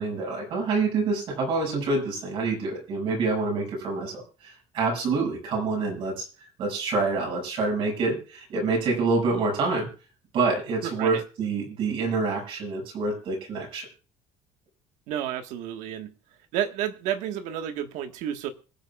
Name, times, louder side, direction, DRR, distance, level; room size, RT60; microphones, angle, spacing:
voice 1, 0.0-9.9 10.3-13.9, right 3 dB, 45° right, 1 dB, 6.5 m, -27 dB
voice 2, 10.8-11.2 15.1-16.1 16.5-18.5, right 10 dB, 75° right, 7 dB, 1.5 m, -31 dB
26.0 x 8.8 x 2.4 m, 0.35 s
cardioid pair, 175°, 12 cm